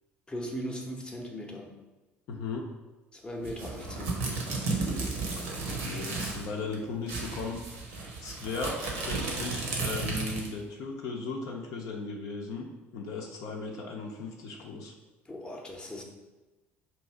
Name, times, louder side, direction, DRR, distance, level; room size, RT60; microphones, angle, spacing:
voice 1, 0.3-1.8 3.1-4.2 15.3-16.0, equal, 15° left, 0 dB, 0.7 m, -38 dB
voice 2, 2.3-2.7 5.3-5.5 5.8-7.6 8.2-14.9, left 3 dB, 55° left, 0 dB, 0.6 m, -37 dB
sound 1, 3.4-6.5 6.7-6.8 7.1-10.6, right 3 dB, 70° right, 0.8 m, -33 dB
3.0 x 2.6 x 4.4 m, 1.1 s
figure-of-eight pair, 55°, 7 cm